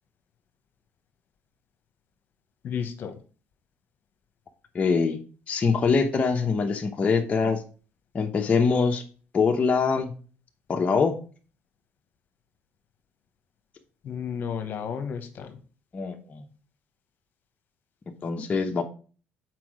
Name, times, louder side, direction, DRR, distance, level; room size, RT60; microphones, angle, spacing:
voice 1, 2.6-3.2 14.0-15.6, left 7 dB, 55° left, 8 dB, 1.2 m, -32 dB
voice 2, 4.7-5.2 5.5-7.6 8.1-9.0 9.3-10.1 10.7-11.2 15.9-16.5 18.2-18.8, left 5 dB, 35° left, 2 dB, 0.9 m, -23 dB
6.0 x 4.7 x 4.8 m, 0.39 s
cardioid pair, 90°, 4 cm